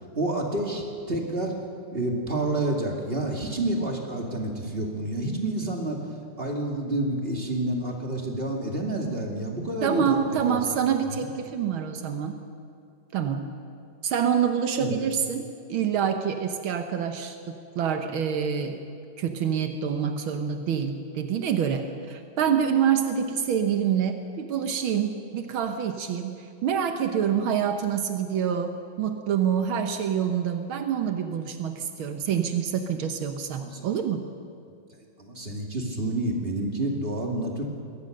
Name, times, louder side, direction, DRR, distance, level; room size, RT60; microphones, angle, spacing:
voice 1, 0.2-1.5 1.9-6.0 6.4-10.2 10.4-10.7 11.2-11.3 14.8-15.0 33.6-33.9 35.2-37.7, right 1 dB, 30° right, 1 dB, 2.5 m, -29 dB
voice 2, 9.8-12.4 13.1-13.5 14.0-18.8 19.2-34.3, right 8 dB, 80° right, 6 dB, 1.9 m, -26 dB
22.0 x 18.0 x 6.6 m, 2.4 s
omnidirectional pair, 2.2 m